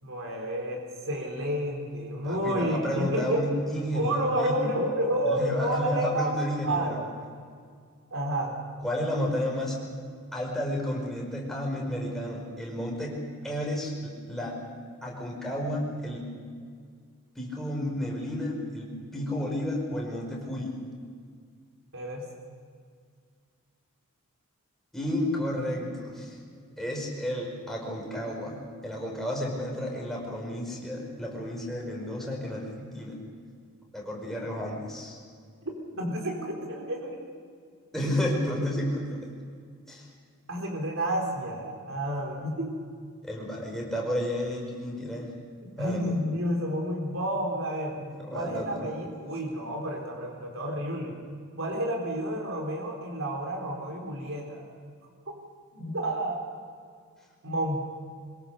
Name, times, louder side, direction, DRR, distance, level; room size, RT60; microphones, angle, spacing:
voice 1, 0.0-3.4 3.9-6.3 6.7-7.0 8.1-8.5 21.9-22.3 35.9-37.3 40.5-42.7 45.8-48.0 48.3-51.2 51.6-54.6 55.3-55.4 55.7-56.4 57.4-57.8, right 1 dB, 65° right, 0 dB, 4.3 m, -30 dB
voice 2, 2.2-4.6 5.3-7.0 8.8-9.8 10.3-13.2 13.4-14.5 15.0-16.3 17.4-20.8 24.9-26.3 26.8-33.2 33.9-35.2 37.9-39.3 39.9-40.0 43.2-45.3 45.8-46.2 47.9-48.9, left 1 dB, ahead, -2 dB, 5.2 m, -32 dB
24.0 x 21.5 x 6.8 m, 2.1 s
head